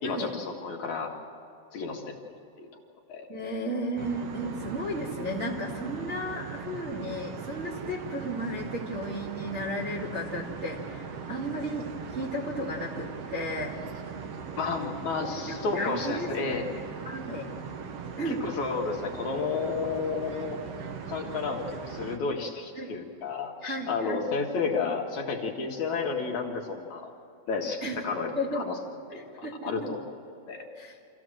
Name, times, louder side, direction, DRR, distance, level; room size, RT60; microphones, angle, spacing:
voice 1, 0.0-1.1 1.7-2.1 2.6-2.7 3.1-3.3 14.6-16.6 18.3-20.6 21.1-27.1 27.5-28.7 29.1-30.0 30.5-30.7, left 4 dB, 60° left, 1 dB, 2.8 m, -31 dB
voice 2, 3.3-13.8 15.2-16.7 17.0-17.5 18.2-18.4 22.7-22.9 23.6-24.3 27.8-28.0 28.3-28.6 29.1-29.9 30.8-31.0, equal, 25° right, -6 dB, 1.8 m, -34 dB
sound 1, 4.0-22.2, right 6 dB, 60° right, 1.7 m, -39 dB
26.5 x 15.0 x 7.6 m, 2.5 s
omnidirectional pair, 4.0 m